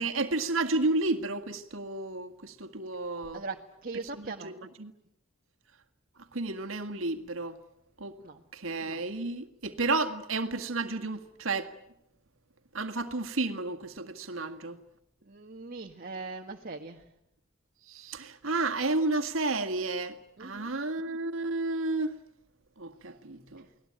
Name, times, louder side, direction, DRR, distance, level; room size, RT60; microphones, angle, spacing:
voice 1, 0.0-3.4 4.1-4.9 6.3-7.6 8.0-8.1 8.5-11.7 12.7-14.8 17.9-22.2 22.8-23.7, right 2 dB, 80° right, 1.9 m, -32 dB
voice 2, 3.3-4.6 8.2-8.4 15.2-17.0 20.4-20.7, right 3 dB, 45° right, 1.6 m, -40 dB
29.5 x 20.0 x 8.9 m
head